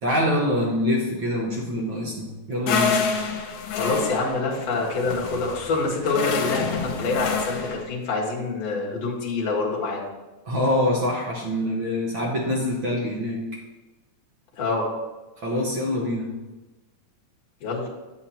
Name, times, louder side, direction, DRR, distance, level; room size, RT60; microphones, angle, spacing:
voice 1, 0.0-3.0 10.4-13.6 15.4-16.3, left 1 dB, 50° right, -3 dB, 1.6 m, -25 dB
sound 1, 2.7-7.8, left 5 dB, 75° left, 2.2 m, -28 dB
voice 2, 3.7-10.1 14.6-14.9 17.6-17.8, left 3 dB, 55° left, -4 dB, 2.8 m, -26 dB
8.7 x 8.5 x 2.9 m, 1.1 s
omnidirectional pair, 3.7 m